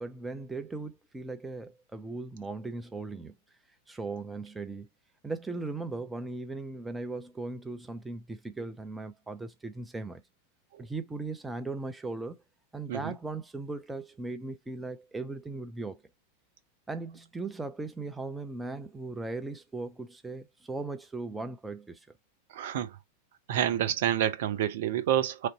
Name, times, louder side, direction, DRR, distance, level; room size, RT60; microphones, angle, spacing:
voice 1, 0.0-3.3 3.9-4.9 5.2-10.2 10.8-12.4 12.7-16.0 16.9-22.1, right 3 dB, 10° right, 0.4 m, -38 dB
voice 2, 22.5-22.9 23.5-25.5, right 11 dB, 55° right, 0.6 m, -28 dB
3.2 x 2.6 x 3.9 m
figure-of-eight pair, 90°, 0 cm